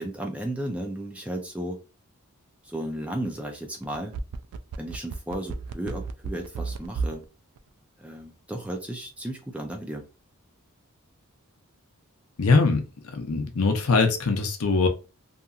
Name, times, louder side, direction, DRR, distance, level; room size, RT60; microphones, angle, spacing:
voice 1, 0.0-1.8 2.6-4.2 4.8-7.2 8.0-10.1, right 1 dB, 5° right, 2 dB, 0.4 m, -34 dB
sound 1, 3.8-7.2 7.6-7.7, right 4 dB, 85° right, 0.3 m, -32 dB
voice 2, 12.4-12.8 13.1-14.9, left 4 dB, 75° left, 5 dB, 0.6 m, -22 dB
2.8 x 2.6 x 2.3 m, 0.31 s
head